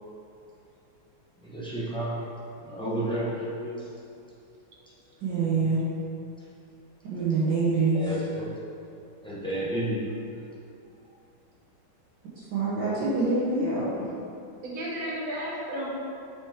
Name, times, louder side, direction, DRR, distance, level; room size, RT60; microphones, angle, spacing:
voice 1, 1.4-2.2 2.6-3.8 7.9-8.5 9.2-10.0, right 1 dB, 5° left, -9 dB, 0.7 m, -31 dB
voice 2, 5.2-5.8 7.1-8.0 12.5-14.1, right 3 dB, 65° right, -9 dB, 1.7 m, -25 dB
voice 3, 14.6-15.9, equal, 50° right, -4 dB, 1.3 m, -33 dB
6.0 x 4.8 x 3.5 m, 2.6 s
omnidirectional pair, 2.2 m